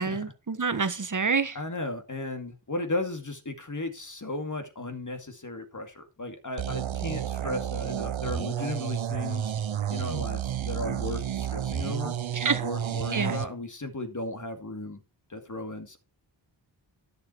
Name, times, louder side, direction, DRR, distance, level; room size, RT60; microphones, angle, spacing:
voice 1, 0.0-1.6 12.3-12.6 13.1-13.4, right 5 dB, 40° right, 1.3 m, -27 dB
voice 2, 1.5-9.5 9.9-12.1 12.5-15.0 15.3-16.0, left 2 dB, 40° left, 2.4 m, -35 dB
sound 1, 6.6-13.5, right 10 dB, 80° right, 0.8 m, -31 dB
11.5 x 6.7 x 4.5 m
cardioid pair, 40°, 46 cm